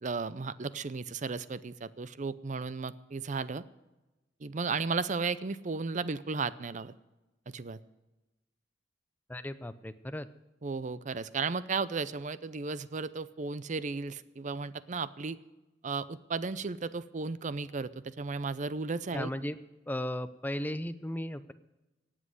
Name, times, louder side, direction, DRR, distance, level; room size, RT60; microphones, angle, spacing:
voice 1, 0.0-3.6 4.4-6.9 7.5-7.8 10.6-15.4 15.8-19.3, right 4 dB, 40° right, 16 dB, 0.6 m, -34 dB
voice 2, 9.3-10.3 19.1-19.6 19.9-21.5, left 1 dB, 10° left, 12 dB, 0.6 m, -36 dB
18.0 x 7.6 x 7.8 m, 1.0 s
head